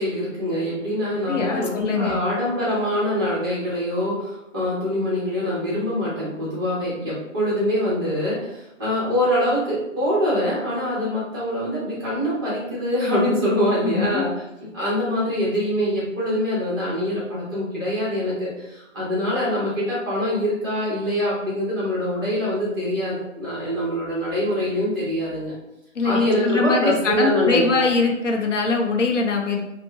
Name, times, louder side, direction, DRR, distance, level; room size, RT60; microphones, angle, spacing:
voice 1, 0.0-14.3 14.7-25.5 26.0-27.7, equal, 20° right, -9 dB, 0.8 m, -24 dB
voice 2, 1.3-2.2 13.8-14.2 25.9-29.6, left 4 dB, 70° left, 2 dB, 0.6 m, -22 dB
3.0 x 2.1 x 2.3 m, 0.92 s
figure-of-eight pair, 145°, 38 cm